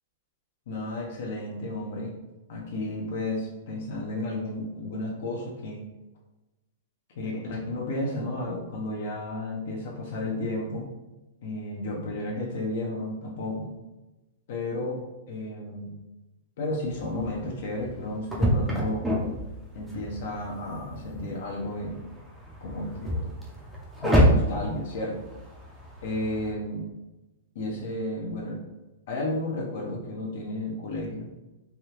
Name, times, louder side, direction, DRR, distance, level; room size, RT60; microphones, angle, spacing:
voice 1, 0.7-2.1 2.5-5.8 7.2-10.9 11.4-13.7 14.5-15.0 15.3-15.9 16.6-19.1 19.7-22.0 22.6-23.3 24.0-25.2 26.0-26.9 27.5-28.6 29.1-31.3, left 1 dB, 65° left, -2 dB, 0.7 m, -32 dB
sound 1, 16.8-26.5, equal, 5° right, 0.6 m, -28 dB
3.5 x 2.3 x 2.9 m, 1.1 s
hypercardioid pair, 150°, 0 cm